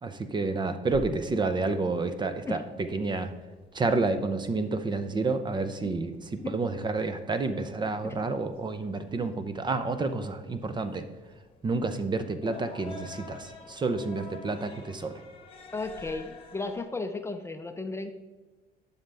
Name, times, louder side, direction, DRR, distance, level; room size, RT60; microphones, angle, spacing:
voice 1, 0.0-3.3 3.7-11.1 11.6-15.2, right 3 dB, 25° right, 9 dB, 0.6 m, -29 dB
sound 1, 0.9-16.8, left 4 dB, 35° left, 1.1 m, -50 dB
voice 2, 15.7-18.1, left 3 dB, 15° left, 7 dB, 0.5 m, -34 dB
11.5 x 5.6 x 3.4 m, 1.2 s
cardioid pair, 110°, 17 cm